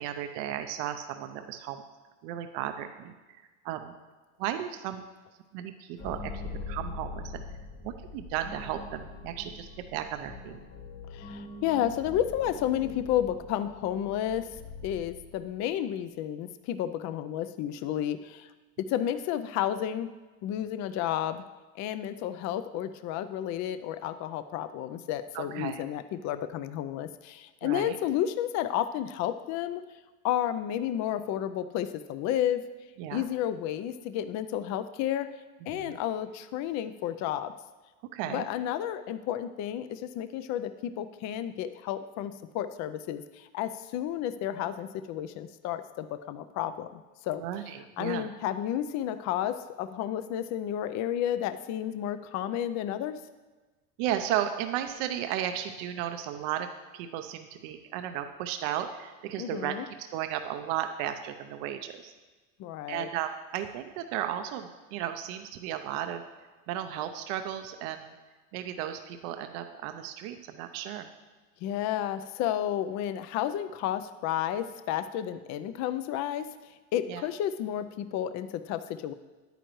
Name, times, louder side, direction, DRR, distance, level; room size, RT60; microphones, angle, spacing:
voice 1, 0.0-1.8 2.2-3.9 4.4-5.0 5.5-6.3 6.7-7.4 7.8-10.6 25.3-25.8 27.6-28.0 33.0-33.3 35.7-36.0 38.1-38.4 47.4-48.3 54.0-56.7 56.9-62.1 62.9-66.2 66.7-68.1 68.5-71.1 77.1-77.3, right 11 dB, 75° right, 7 dB, 0.7 m, -34 dB
sound 1, 6.0-15.6, left 3 dB, 35° left, 1.5 m, -43 dB
voice 2, 11.1-14.5 14.8-18.5 18.8-20.1 20.4-21.4 21.8-29.8 30.2-32.6 33.1-35.3 35.7-37.5 38.3-47.4 48.0-53.1 59.4-59.8 62.6-63.1 71.6-76.5 76.9-79.1, left 11 dB, 50° left, 12 dB, 0.5 m, -31 dB
10.0 x 9.1 x 3.1 m, 1.2 s
supercardioid pair, 120°, 37 cm